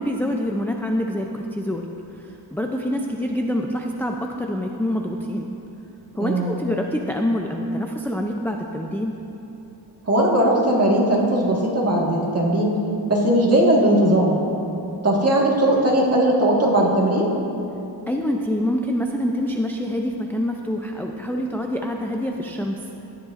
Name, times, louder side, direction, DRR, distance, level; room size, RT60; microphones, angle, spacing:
voice 1, 0.0-1.9 2.2-5.5 6.2-9.1 18.1-22.8, equal, 5° left, 1 dB, 0.4 m, -26 dB
voice 2, 6.2-6.6 10.1-12.8 13.1-14.3 15.0-17.3, right 1 dB, 35° right, -3 dB, 1.6 m, -18 dB
14.0 x 10.0 x 2.5 m, 3.0 s
wide cardioid pair, 120°, 44 cm